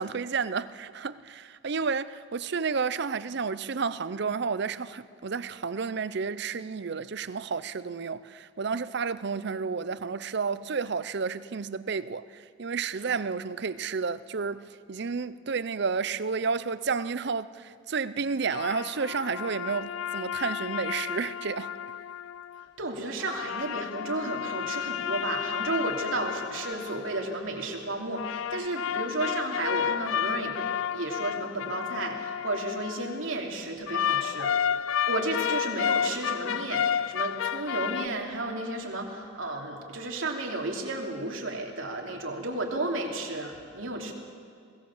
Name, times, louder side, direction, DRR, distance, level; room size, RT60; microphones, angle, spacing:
voice 1, 0.0-14.6 14.9-21.7, right 5 dB, 60° right, 0.6 m, -31 dB
sound 1, 18.5-22.6 23.2-27.6 28.1-33.2 33.9-38.1, left 9 dB, 80° left, 0.4 m, -31 dB
voice 2, 22.8-44.1, right 2 dB, 85° right, 3.0 m, -33 dB
22.0 x 17.5 x 7.3 m
head